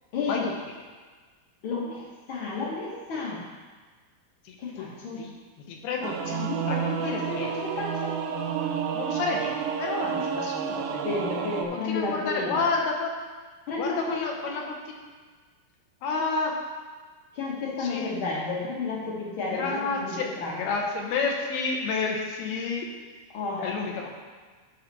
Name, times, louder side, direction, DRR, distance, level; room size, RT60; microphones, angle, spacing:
voice 1, 0.1-0.5 1.6-3.4 4.6-5.2 6.3-8.1 10.0-10.4 11.0-12.6 13.7-14.2 17.3-20.7 23.3-23.7 24.0-24.1, left 3 dB, 60° left, -4 dB, 1.3 m, -32 dB
voice 2, 4.5-4.9 5.2-5.3 5.7-7.5 8.9-10.9 11.7-13.1 13.8-14.6 16.0-16.5 17.8-18.1 19.5-20.3 20.6-22.9 23.6-24.1, left 4 dB, 80° left, 0 dB, 2.9 m, -30 dB
Singing / Musical instrument, 6.0-11.7, right 7 dB, 80° right, 2.3 m, -30 dB
10.0 x 5.7 x 4.1 m, 1.4 s
omnidirectional pair, 4.6 m